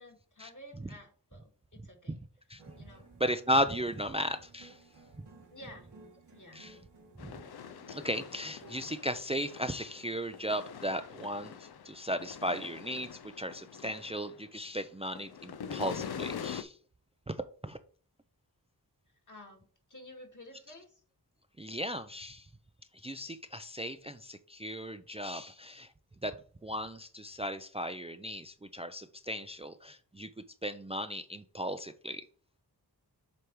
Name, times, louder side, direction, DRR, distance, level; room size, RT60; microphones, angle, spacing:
voice 1, 0.0-2.2 2.8-3.1 5.5-5.9 6.3-6.7 19.3-21.0, left 1 dB, 50° left, 1 dB, 2.0 m, -52 dB
sound 1, 2.6-9.0, right 3 dB, 80° right, 1.7 m, -57 dB
voice 2, 3.2-4.8 5.2-5.3 6.5-6.8 7.2-7.3 7.9-16.8 17.3-17.8 21.6-22.5 22.9-25.9 26.2-30.3 30.6-32.3, equal, 15° right, 9 dB, 0.4 m, -36 dB
sound 2, 7.2-14.7 15.0-16.6, left 7 dB, 70° left, 0.6 m, -44 dB
7.8 x 3.4 x 4.6 m, 0.44 s
wide cardioid pair, 55°, 40 cm